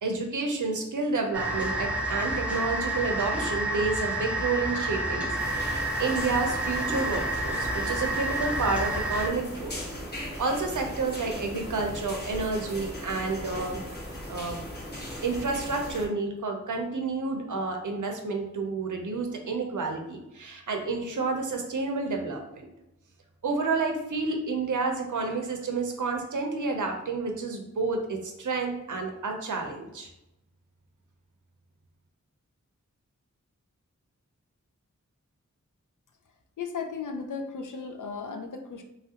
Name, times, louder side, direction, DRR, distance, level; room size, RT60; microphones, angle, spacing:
voice 1, 0.0-9.7 10.4-13.8 14.3-14.6 15.2-22.7 23.4-30.1, right 3 dB, 85° right, 3 dB, 0.5 m, -30 dB
sound 1, 1.3-9.3, right 1 dB, 5° right, 0.5 m, -29 dB
sound 2, 5.3-16.1, left 1 dB, 35° left, 0.8 m, -38 dB
voice 2, 36.6-38.8, left 5 dB, 90° left, 4 dB, 0.5 m, -35 dB
3.0 x 2.4 x 2.8 m, 0.89 s
wide cardioid pair, 55°, 30 cm